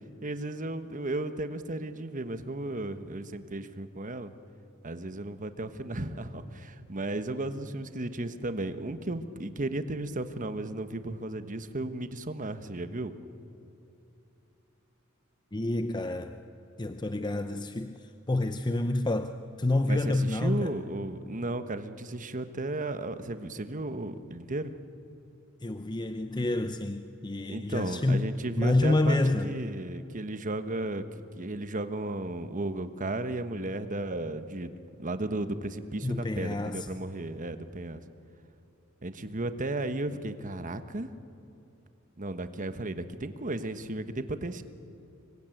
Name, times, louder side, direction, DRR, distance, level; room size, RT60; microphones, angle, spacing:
voice 1, 0.2-4.3 4.8-13.1 19.9-24.7 27.5-31.0 31.3-38.0 39.0-41.1 42.2-44.6, right 2 dB, 40° right, 10 dB, 1.2 m, -34 dB
voice 2, 15.5-16.4 16.8-20.7 25.6-29.5 36.0-36.9, left 2 dB, 20° left, 8 dB, 0.7 m, -28 dB
26.0 x 22.5 x 9.2 m, 3.0 s
head